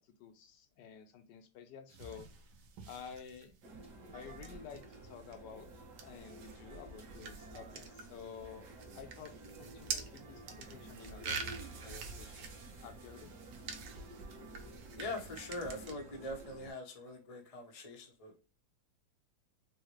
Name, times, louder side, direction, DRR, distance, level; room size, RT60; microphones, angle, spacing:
voice 1, 0.2-2.3 2.9-3.6 4.1-5.7 6.0-8.7 8.9-12.5 12.8-13.3, left 7 dB, 80° left, 1.3 m, -51 dB
sound 1, 1.9-15.9, right 5 dB, 75° right, 1.2 m, -47 dB
sound 2, 3.6-16.7, right 2 dB, 50° right, 1.2 m, -52 dB
voice 2, 15.0-18.4, left 2 dB, 50° left, 0.4 m, -43 dB
4.6 x 2.1 x 3.1 m
omnidirectional pair, 1.9 m